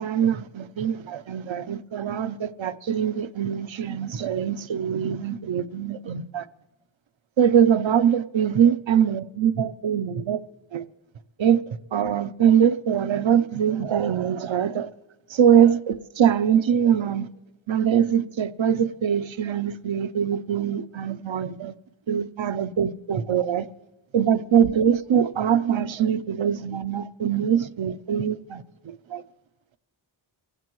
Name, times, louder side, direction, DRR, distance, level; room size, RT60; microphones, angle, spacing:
voice 1, 0.0-6.5 7.4-10.4 10.7-10.8 11.4-14.9 15.3-17.3 17.7-21.7 22.1-23.7 24.1-29.2, right 8 dB, 75° right, 0.7 m, -23 dB
29.0 x 16.0 x 3.1 m
wide cardioid pair, 70°, 47 cm